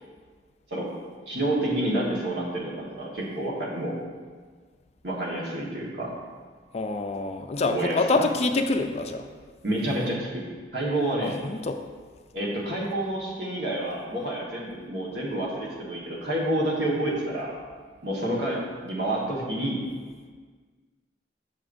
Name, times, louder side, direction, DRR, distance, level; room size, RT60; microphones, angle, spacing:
voice 1, 1.3-4.0 5.0-6.1 7.6-8.2 9.6-10.4 10.7-11.4 12.3-17.5 18.0-19.8, right 1 dB, 65° right, -4 dB, 1.4 m, -29 dB
voice 2, 6.7-9.3 11.2-11.8, left 3 dB, 35° left, 6 dB, 0.4 m, -26 dB
6.8 x 6.0 x 2.6 m, 1.5 s
head